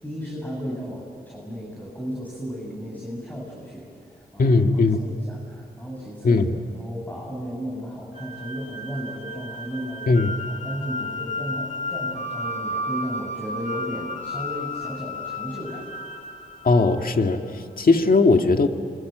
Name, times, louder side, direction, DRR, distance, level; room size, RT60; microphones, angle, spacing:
voice 1, 0.0-4.6 5.0-6.5 6.7-15.9, equal, 10° left, -3 dB, 7.5 m, -34 dB
voice 2, 4.4-5.0 6.2-6.6 10.1-10.3 16.6-18.7, left 3 dB, 60° left, 5 dB, 2.0 m, -19 dB
sound 1, 8.1-17.3, left 1 dB, 45° left, 2.5 m, -33 dB
26.5 x 25.0 x 8.1 m, 2.4 s
cardioid pair, 50°, 17 cm